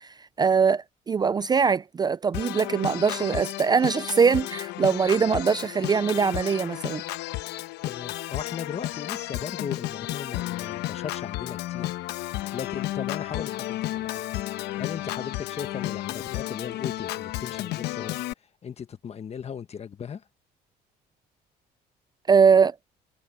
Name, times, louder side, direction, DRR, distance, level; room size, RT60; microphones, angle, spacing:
voice 1, 0.0-7.0 22.3-22.8, right 5 dB, 25° right, 0.4 m, -22 dB
Organ, 2.3-18.3, left 16 dB, 85° left, 1.0 m, -33 dB
voice 2, 7.8-11.9 12.2-14.2 14.8-18.2 18.6-20.2, left 7 dB, 40° left, 1.5 m, -37 dB
cardioid pair, 110°, 17 cm